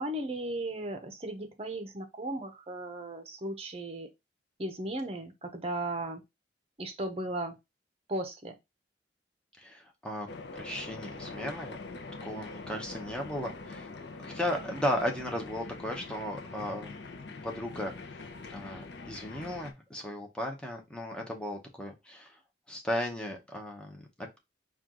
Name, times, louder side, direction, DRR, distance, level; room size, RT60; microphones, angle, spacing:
voice 1, 0.0-4.1 4.6-6.2 6.8-7.6 8.1-8.6, right 1 dB, 35° right, 0.7 m, -36 dB
voice 2, 9.6-10.3 10.5-11.8 12.2-13.9 14.2-17.0 17.4-17.9 18.5-22.3 22.7-24.4, left 1 dB, 5° left, 0.9 m, -35 dB
sound 1, 10.3-19.7, left 3 dB, 80° left, 0.6 m, -43 dB
4.5 x 2.4 x 3.6 m
head